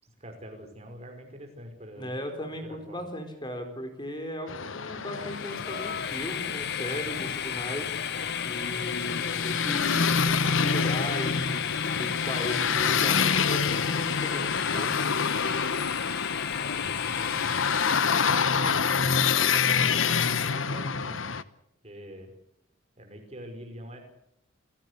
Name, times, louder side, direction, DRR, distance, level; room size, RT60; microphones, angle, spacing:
voice 1, 0.0-2.3 2.6-3.0 16.8-17.5 18.2-19.1 19.4-21.4 21.8-22.3 23.0-24.0, equal, 30° right, 5 dB, 5.4 m, -44 dB
voice 2, 2.0-7.9 8.4-15.1, left 1 dB, 20° left, 5 dB, 4.1 m, -37 dB
sound 1, 4.5-21.4, left 6 dB, 75° left, 1.1 m, -27 dB
Train, 5.1-18.6, left 9 dB, 55° left, 1.2 m, -34 dB
29.0 x 16.5 x 8.3 m, 0.75 s
head